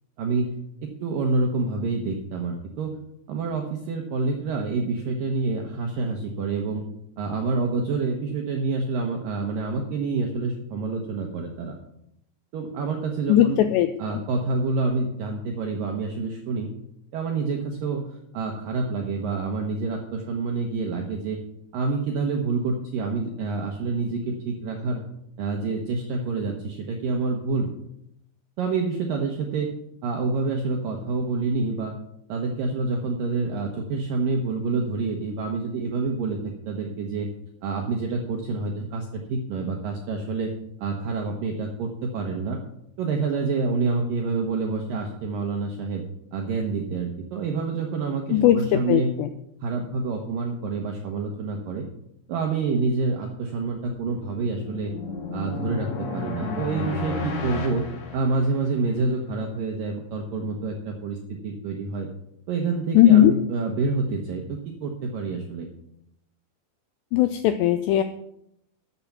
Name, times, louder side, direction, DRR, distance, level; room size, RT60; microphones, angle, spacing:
voice 1, 0.8-3.0 3.3-6.8 7.2-11.8 12.5-13.6 14.0-16.7 17.1-21.4 21.7-25.0 25.4-27.7 28.6-29.7 30.0-31.9 32.3-37.3 37.6-40.5 40.8-42.6 43.0-46.0 46.3-49.1 49.6-51.9 52.3-54.9 55.3-57.8 58.1-62.1 62.5-65.7, right 4 dB, 75° right, 2 dB, 2.0 m, -27 dB
voice 2, 13.3-13.9 48.3-49.3 63.0-63.3 67.1-68.0, left 12 dB, 85° left, 9 dB, 2.4 m, -18 dB
sound 1, 53.9-58.9, left 4 dB, 55° left, 2.1 m, -33 dB
12.5 x 7.0 x 6.0 m, 0.77 s
omnidirectional pair, 5.5 m